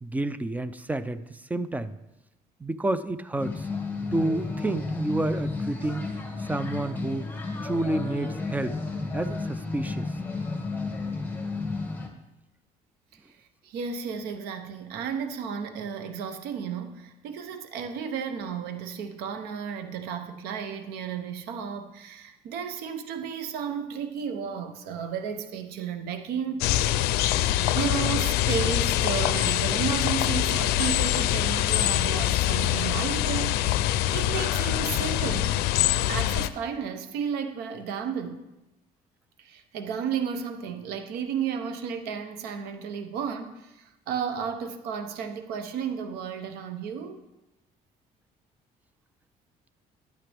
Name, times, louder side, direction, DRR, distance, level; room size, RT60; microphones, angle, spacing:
voice 1, 0.0-1.9 2.6-3.7 4.1-6.0 6.4-7.3 7.6-8.8 9.1-10.1, right 2 dB, 10° right, 14 dB, 0.5 m, -29 dB
sound 1, 3.4-12.1, left 3 dB, 10° left, 1.8 m, -32 dB
voice 2, 13.6-26.8 27.2-35.6 36.1-38.5 39.4-47.2, right 7 dB, 85° right, 8 dB, 0.8 m, -33 dB
sound 2, 26.6-36.5, left 13 dB, 90° left, 0.5 m, -24 dB
11.5 x 9.2 x 3.4 m, 0.97 s
cardioid pair, 105°, 16 cm